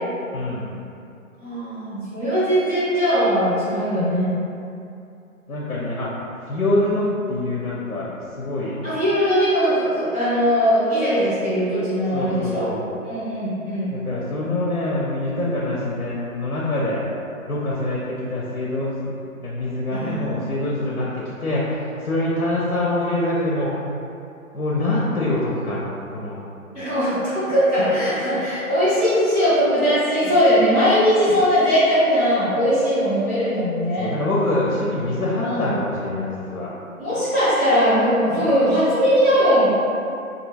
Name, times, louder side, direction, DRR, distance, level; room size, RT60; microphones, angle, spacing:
voice 1, 0.3-0.7 5.5-6.1 6.5-8.1 8.4-8.8 12.1-12.9 13.9-17.0 17.5-19.2 19.4-23.8 24.5-26.4 34.0-36.7, left 1 dB, 75° left, -5 dB, 0.6 m, -25 dB
voice 2, 1.4-4.3 6.7-6.9 8.8-12.7 13.0-13.9 19.9-20.4 26.7-34.1 35.4-35.7 37.0-39.7, equal, 5° right, -23 dB, 0.5 m, -20 dB
2.6 x 2.4 x 2.7 m, 2.6 s
figure-of-eight pair, 135°, 42 cm